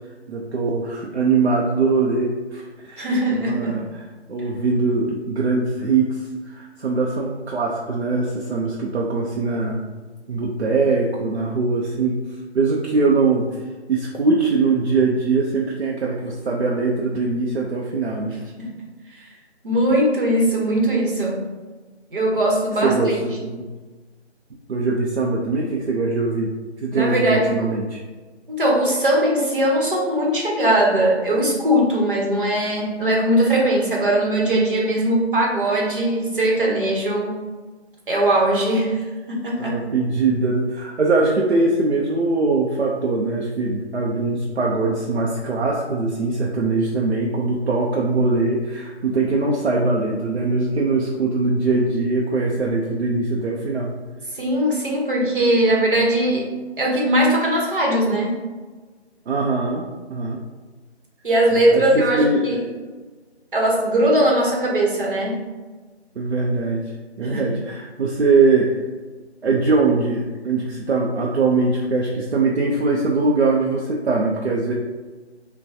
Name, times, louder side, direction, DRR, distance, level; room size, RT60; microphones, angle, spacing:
voice 1, 0.3-9.8 10.3-13.5 13.9-18.4 22.8-23.7 24.7-26.5 26.8-28.0 39.6-53.9 59.3-60.4 61.5-62.5 66.2-68.8 69.4-74.7, right 3 dB, 65° right, -2 dB, 0.6 m, -22 dB
voice 2, 3.0-3.8 18.6-18.7 19.1-19.3 19.6-21.4 22.1-23.2 26.9-27.7 28.5-37.3 38.1-39.8 54.3-56.5 56.8-58.4 61.2-62.6 63.5-65.4 67.2-67.4, right 1 dB, 50° right, -2 dB, 1.0 m, -20 dB
5.4 x 2.2 x 2.7 m, 1.3 s
figure-of-eight pair, 170°, 34 cm